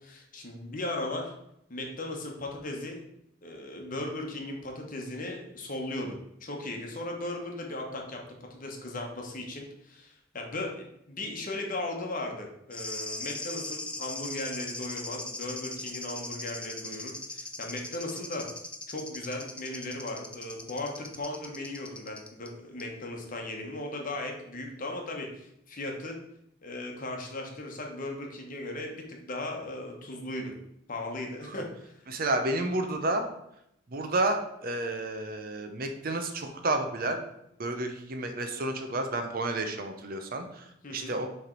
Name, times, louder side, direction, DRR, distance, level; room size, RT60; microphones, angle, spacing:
voice 1, 0.0-1.3 1.7-3.0 3.4-8.2 8.5-18.4 18.9-26.2 26.6-30.5 30.9-32.0 40.8-41.2, left 2 dB, 40° left, 1 dB, 1.0 m, -37 dB
sound 1, 12.7-22.5 22.8-22.9, left 2 dB, 5° left, 0.4 m, -39 dB
voice 2, 32.1-33.2 33.9-37.2 37.6-41.3, right 2 dB, 45° right, 6 dB, 0.7 m, -31 dB
6.3 x 3.4 x 4.4 m, 0.78 s
head